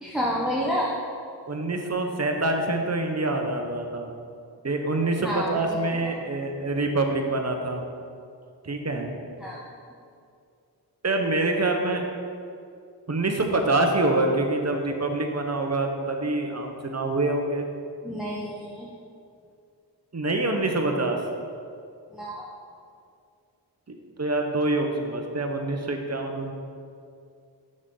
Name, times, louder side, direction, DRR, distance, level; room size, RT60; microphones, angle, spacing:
voice 1, 0.0-1.0 5.2-6.1 9.4-9.6 18.0-18.9 22.1-22.5, equal, ahead, -5 dB, 0.9 m, -29 dB
voice 2, 1.5-4.1 4.6-7.8 8.6-9.1 11.0-12.0 13.1-17.7 20.1-21.2 24.2-26.5, right 2 dB, 35° right, 3 dB, 0.9 m, -26 dB
6.4 x 6.3 x 3.8 m, 2.4 s
cardioid pair, 40°, 44 cm